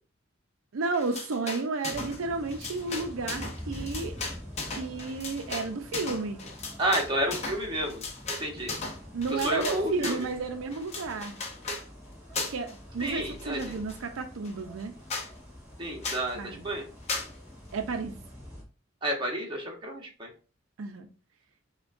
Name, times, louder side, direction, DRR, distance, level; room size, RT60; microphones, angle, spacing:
voice 1, 0.7-4.2 4.7-6.4 9.1-11.4 12.5-14.9 16.3-16.6 17.7-18.2 20.8-21.1, right 4 dB, 80° right, 0.5 m, -32 dB
sound 1, 0.9-2.2 2.5-10.3 10.7-11.9 12.3-12.7 13.0-14.0 14.4-14.5 14.8-14.9 15.1-15.3 16.0-16.3 17.1-17.3, left 3 dB, 30° left, 0.7 m, -36 dB
sound 2, 1.9-18.6, equal, 5° right, 2.1 m, -46 dB
voice 2, 6.8-8.0 8.4-8.8 9.3-10.3 13.0-13.7 15.8-16.9 19.0-20.3, right 1 dB, 25° right, 1.0 m, -30 dB
5.8 x 2.2 x 2.5 m
head